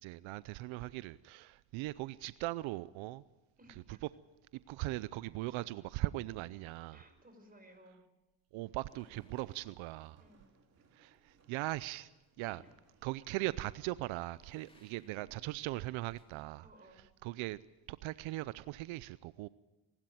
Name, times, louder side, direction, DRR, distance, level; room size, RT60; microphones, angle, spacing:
voice 1, 0.0-3.2 3.9-4.0 4.7-7.0 8.5-10.2 10.9-12.1 12.4-12.6 13.0-16.7 16.9-17.6 17.9-19.5, right 18 dB, 85° right, 0.6 m, -39 dB
voice 2, 3.6-4.0 6.9-8.0 10.2-10.4 12.4-12.7 14.8-15.1 16.6-17.0, right 1 dB, 20° right, 5.8 m, -60 dB
sound 1, 8.8-10.3 14.2-15.3 15.6-16.5, left 1 dB, 10° left, 3.5 m, -68 dB
Walk footsteps, 8.9-16.1, right 4 dB, 35° right, 3.7 m, -71 dB
26.5 x 12.0 x 9.2 m
cardioid pair, 95°, 46 cm